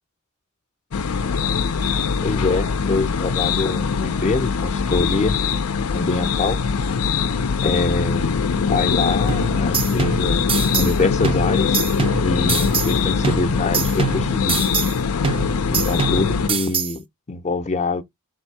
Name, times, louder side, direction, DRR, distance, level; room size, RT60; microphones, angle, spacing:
sound 1, 0.9-16.5, left 5 dB, 90° left, 0.5 m, -22 dB
voice 1, 2.2-5.4 5.9-6.6 7.6-8.4 8.7-10.4 10.7-11.8 12.2-14.6 15.7-18.0, left 3 dB, 35° left, 0.5 m, -24 dB
sound 2, 9.3-11.0 11.2-13.0 13.2-15.0 15.2-17.0, right 6 dB, 25° right, 0.4 m, -25 dB
3.5 x 2.7 x 4.5 m
head